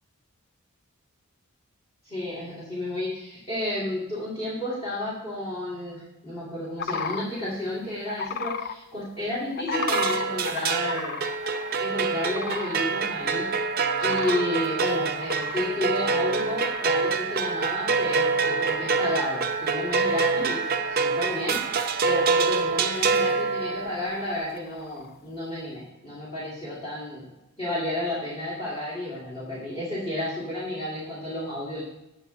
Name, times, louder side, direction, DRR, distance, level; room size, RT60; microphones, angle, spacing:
voice 1, 2.0-11.2 11.8-13.4 14.0-27.3 27.6-31.8, left 1 dB, 25° left, -9 dB, 2.7 m, -32 dB
sound 1, 6.8-7.2 8.1-8.7 9.6-11.8 12.2-12.9 13.3-13.4 13.9-14.5 15.0-17.0 17.3-17.7 18.0-18.6 19.1-19.2 19.7-20.5 21.0-21.7 22.1-22.6 22.9-23.5 24.6-25.1, left 6 dB, 45° left, 0.3 m, -35 dB
sound 2, 9.7-24.2, right 4 dB, 45° right, 0.5 m, -26 dB
8.8 x 6.5 x 4.1 m, 0.91 s
head